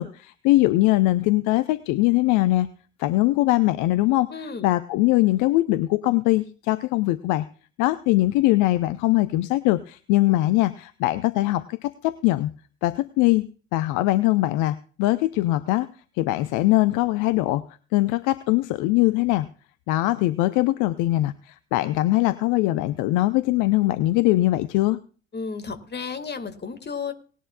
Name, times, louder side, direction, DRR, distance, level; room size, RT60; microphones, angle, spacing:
voice 1, 0.0-2.7 3.0-4.3 4.6-7.5 7.8-12.5 12.8-15.9 16.2-17.6 17.9-19.5 19.9-25.0, left 17 dB, 55° left, 15 dB, 0.6 m, -21 dB
voice 2, 4.3-4.7 25.3-27.1, left 5 dB, 30° left, 8 dB, 1.9 m, -33 dB
19.0 x 11.0 x 2.3 m, 0.40 s
figure-of-eight pair, 50°, 36 cm